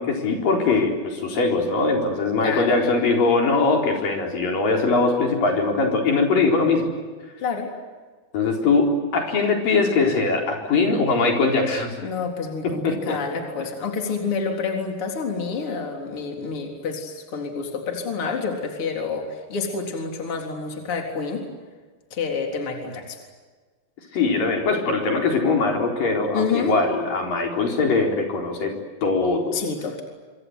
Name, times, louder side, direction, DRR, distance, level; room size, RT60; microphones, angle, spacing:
voice 1, 0.0-6.9 8.3-12.0 12.6-13.4 24.1-28.7 29.0-29.6, left 3 dB, 65° left, 1 dB, 5.9 m, -21 dB
voice 2, 2.4-2.8 7.4-7.7 12.0-21.5 22.1-23.2 26.3-26.7 29.5-30.0, left 5 dB, 35° left, 2 dB, 4.4 m, -28 dB
26.5 x 26.0 x 8.1 m, 1.4 s
omnidirectional pair, 4.2 m